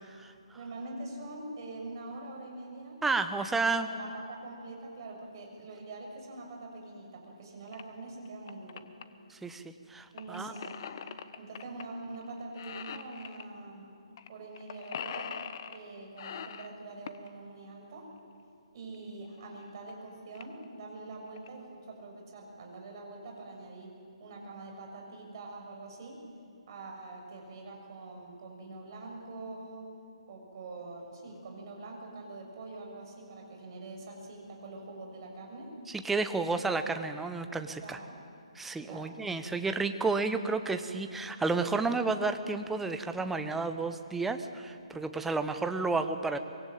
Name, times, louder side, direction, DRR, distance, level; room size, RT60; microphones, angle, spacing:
voice 1, 0.5-3.0 3.8-8.8 10.1-10.8 11.4-13.9 14.3-15.3 15.7-18.1 18.7-23.9 24.2-26.2 26.7-29.9 30.3-35.7 36.3-36.6 37.8-38.2 38.8-39.1, right 2 dB, 40° right, 1 dB, 6.9 m, -44 dB
voice 2, 3.0-3.9 9.3-10.5 35.9-38.0 38.5-46.4, right 3 dB, 5° right, 8 dB, 1.0 m, -31 dB
sound 1, 7.7-7.8 8.3-9.0 10.2-11.8 12.1-12.3 12.6-13.5 14.2-14.3 14.6-15.8 16.2-17.3 18.9-19.0 19.6-19.7 19.9-20.0 20.4-20.6 21.1-21.5, left 8 dB, 40° left, 1.2 m, -42 dB
24.5 x 23.0 x 9.0 m, 2.4 s
figure-of-eight pair, 135°, 3 cm